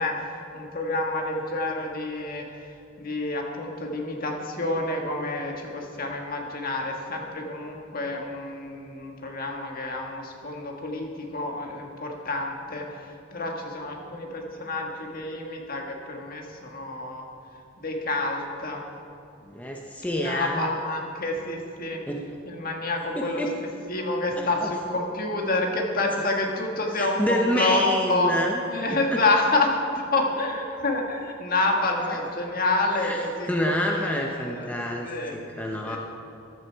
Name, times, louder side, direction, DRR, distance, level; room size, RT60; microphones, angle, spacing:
voice 1, 0.0-2.4 3.0-17.2 17.8-18.8 20.1-22.0 22.4-28.3 28.7-34.8 35.0-35.4 35.8-36.0, left 2 dB, 50° left, 1 dB, 1.7 m, -28 dB
voice 2, 19.5-20.6 22.1-22.2 23.1-23.5 24.4-24.7 27.0-28.6 33.0-33.2 33.5-36.0, equal, 10° left, 0 dB, 0.8 m, -28 dB
14.5 x 11.0 x 4.6 m, 2.7 s
head